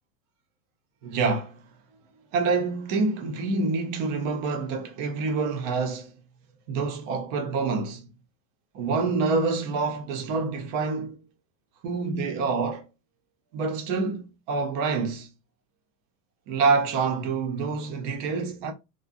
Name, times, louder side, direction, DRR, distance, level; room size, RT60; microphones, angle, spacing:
voice 1, 1.0-1.6 2.3-6.1 6.7-8.1 8.7-11.2 11.8-12.9 13.5-15.3 16.5-18.7, right 4 dB, 30° right, 0.4 m, -27 dB
2.5 x 2.1 x 2.4 m
supercardioid pair, 140°, 49 cm